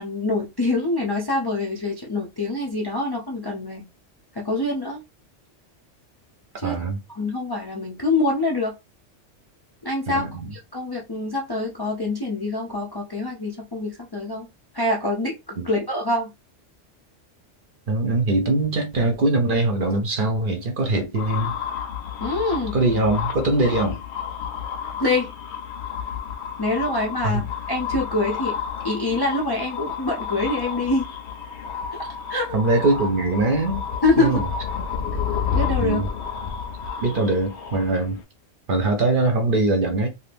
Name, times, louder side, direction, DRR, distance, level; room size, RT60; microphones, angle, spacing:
voice 1, 0.0-3.9 4.3-5.0 6.6-6.8 7.1-8.7 9.8-14.5 14.7-16.3 22.2-22.8 25.0-25.3 26.6-28.6 28.8-31.1 31.9-32.5 34.0-34.4 35.5-36.0, left 2 dB, 35° left, 0.4 m, -25 dB
voice 2, 6.6-7.0 10.1-10.5 15.6-15.7 17.9-21.6 22.7-24.0 27.2-27.4 32.5-33.8 34.2-34.5 35.8-36.1 37.0-38.2 38.7-40.1, right 2 dB, 50° right, 0.8 m, -22 dB
sound 1, 21.2-38.2, left 7 dB, 65° left, 0.9 m, -31 dB
2.6 x 2.5 x 3.4 m
omnidirectional pair, 1.3 m